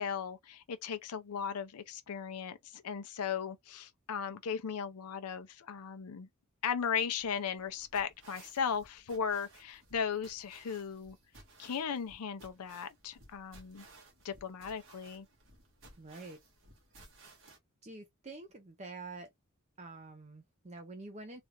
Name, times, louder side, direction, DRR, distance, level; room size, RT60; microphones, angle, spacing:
voice 1, 0.0-6.3 6.6-11.2 11.6-13.9 14.2-15.3, left 7 dB, 85° left, 0.5 m, -37 dB
sound 1, 7.2-17.6, right 2 dB, 60° right, 1.4 m, -59 dB
voice 2, 16.0-16.4 17.8-19.3 19.8-21.4, right 3 dB, 30° right, 0.6 m, -47 dB
3.3 x 2.4 x 2.9 m
head